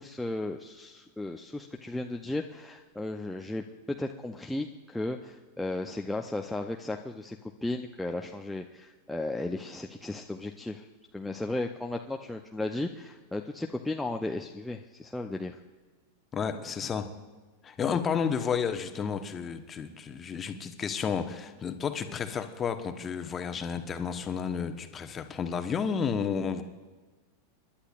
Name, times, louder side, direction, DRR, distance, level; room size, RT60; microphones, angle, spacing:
voice 1, 0.0-10.9 11.1-15.6 17.9-18.0, left 2 dB, 5° left, 2 dB, 0.7 m, -35 dB
voice 2, 16.3-17.1 17.6-26.6, left 6 dB, 25° left, 7 dB, 1.1 m, -31 dB
29.0 x 11.5 x 2.5 m, 1.3 s
figure-of-eight pair, 90°, 0 cm